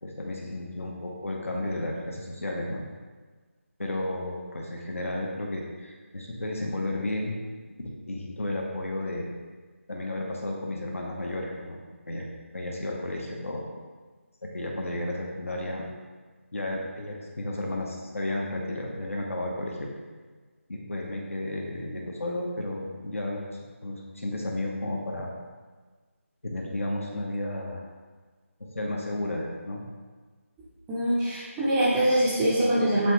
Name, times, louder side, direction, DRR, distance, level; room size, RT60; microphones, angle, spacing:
voice 1, 0.0-2.8 3.8-7.4 7.8-9.3 9.9-11.8 12.1-12.3 12.5-13.6 14.4-15.9 16.5-19.9 20.7-25.3 26.4-27.8 28.6-29.9, left 1 dB, 70° left, -1 dB, 1.1 m, -33 dB
voice 2, 30.9-33.1, right 1 dB, 5° right, -8 dB, 0.6 m, -23 dB
7.4 x 4.0 x 3.2 m, 1.4 s
figure-of-eight pair, 160°, 8 cm